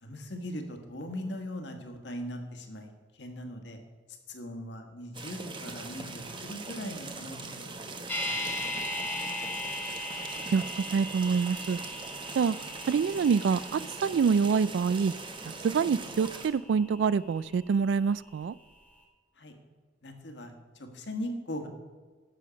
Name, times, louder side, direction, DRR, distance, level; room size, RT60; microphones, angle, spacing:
voice 1, 0.0-3.8 4.3-8.4 8.7-9.0 19.4-19.5 20.0-21.7, left 1 dB, 60° left, 1.5 m, -40 dB
sound 1, 5.1-16.5, right 3 dB, 25° right, 1.0 m, -41 dB
sound 2, 8.1-18.1 18.4-18.5, left 1 dB, 10° left, 1.4 m, -39 dB
voice 2, 10.9-11.8 12.4-12.6 12.9-15.1 15.6-18.5, right 6 dB, 65° right, 0.3 m, -26 dB
11.5 x 7.7 x 5.1 m
head